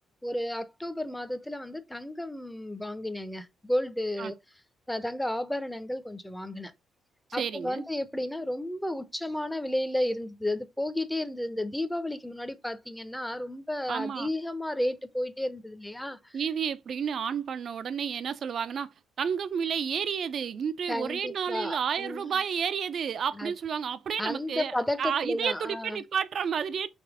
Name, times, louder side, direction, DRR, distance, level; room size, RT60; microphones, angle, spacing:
voice 1, 0.2-4.4 4.9-6.7 7.3-16.4 20.9-22.4 23.4-23.5 24.2-26.0, left 1 dB, 5° left, 0.7 m, -32 dB
voice 2, 7.4-7.8 13.9-14.3 16.3-26.9, right 7 dB, 55° right, 0.5 m, -31 dB
3.5 x 3.2 x 4.8 m
cardioid pair, 90°, 0 cm